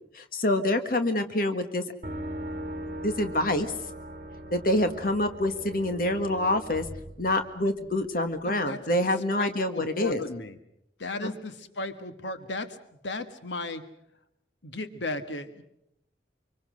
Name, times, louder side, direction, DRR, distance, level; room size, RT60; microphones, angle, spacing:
voice 1, 0.1-1.8 3.0-3.7 4.5-6.8 7.2-10.2 11.2-11.3, left 1 dB, 50° left, 7 dB, 1.6 m, -26 dB
sound 1, 2.0-7.9, right 1 dB, 45° right, 2.2 m, -39 dB
voice 2, 8.5-8.8 9.4-10.6 11.0-12.8 13.0-13.8 14.6-15.6, left 2 dB, 90° left, 9 dB, 1.5 m, -35 dB
25.0 x 24.5 x 6.4 m, 0.78 s
head